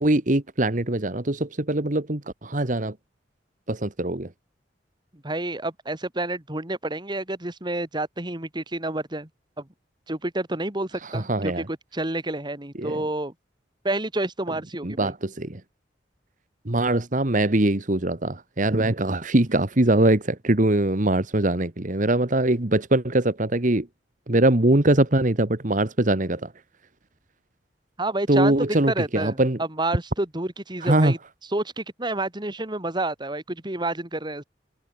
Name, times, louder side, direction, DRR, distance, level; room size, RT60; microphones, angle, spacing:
voice 1, 0.0-2.9 3.7-4.3 11.0-11.6 12.8-13.0 14.8-15.6 16.6-23.9 24.3-26.5 28.3-29.6 30.8-31.1, right 1 dB, 45° right, 1.6 m, -22 dB
voice 2, 5.2-9.3 9.6-9.7 10.1-13.3 13.8-15.1 28.0-28.5 28.9-31.2 31.5-34.4, right 2 dB, 25° right, 2.1 m, -29 dB
head